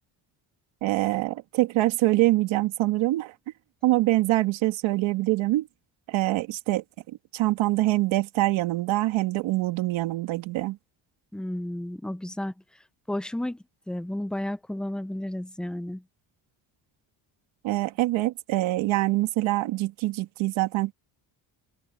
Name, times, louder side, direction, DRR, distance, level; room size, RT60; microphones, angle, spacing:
voice 1, 0.8-3.3 3.8-5.7 6.1-10.8 17.6-20.9, right 17 dB, 85° right, 1.9 m, -25 dB
voice 2, 11.3-12.5 13.1-13.6 13.9-16.0, left 1 dB, ahead, 0.5 m, -32 dB
open air
cardioid pair, 125°, 46 cm